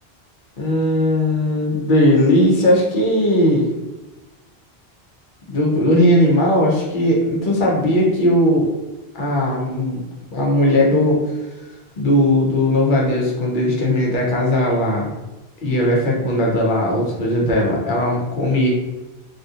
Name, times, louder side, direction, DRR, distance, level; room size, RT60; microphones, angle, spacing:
voice 1, 0.6-3.7 5.5-8.7 9.1-10.0 10.3-11.2 12.0-15.1 15.6-18.7, left 1 dB, 55° left, -3 dB, 1.0 m, -18 dB
3.4 x 2.7 x 2.5 m, 1.0 s
omnidirectional pair, 1.1 m